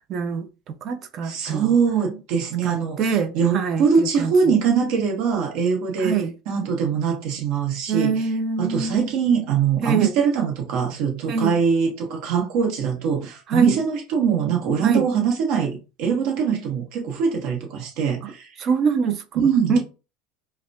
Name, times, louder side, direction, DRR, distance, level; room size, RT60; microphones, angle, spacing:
voice 1, 0.1-1.7 2.6-4.3 6.0-6.3 7.9-9.1 9.8-10.1 11.3-11.6 13.5-13.7 14.8-15.1 18.6-19.4 19.7-19.8, right 5 dB, 45° right, 0.4 m, -24 dB
voice 2, 1.2-6.1 6.5-8.3 8.6-18.5 19.3-19.8, right 6 dB, 65° right, 1.2 m, -22 dB
4.8 x 2.3 x 2.3 m
hypercardioid pair, 95°, 0 cm